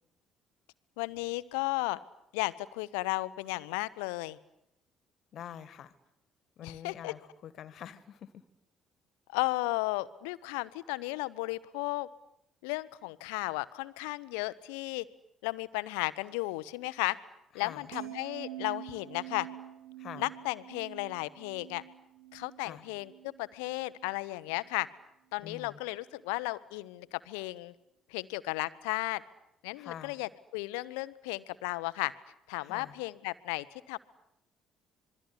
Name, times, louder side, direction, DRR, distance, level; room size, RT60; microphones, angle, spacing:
voice 1, 1.0-2.0 2.3-4.4 6.6-7.1 9.3-12.1 12.6-15.0 15.4-17.2 17.5-19.5 20.2-21.8 22.3-24.9 25.3-27.7 28.1-29.2 29.6-32.1 32.5-34.0, left 22 dB, 70° left, 16 dB, 1.0 m, -34 dB
voice 2, 5.3-6.0 6.6-8.4 17.5-17.9 20.0-20.3 22.6-22.9 25.4-25.8 29.7-30.2 32.6-32.9, left 9 dB, 55° left, 16 dB, 1.9 m, -46 dB
sound 1, 17.9-24.2 24.5-24.9, right 14 dB, 75° right, 2.2 m, -47 dB
26.5 x 23.0 x 9.8 m, 0.79 s
figure-of-eight pair, 50°, 0 cm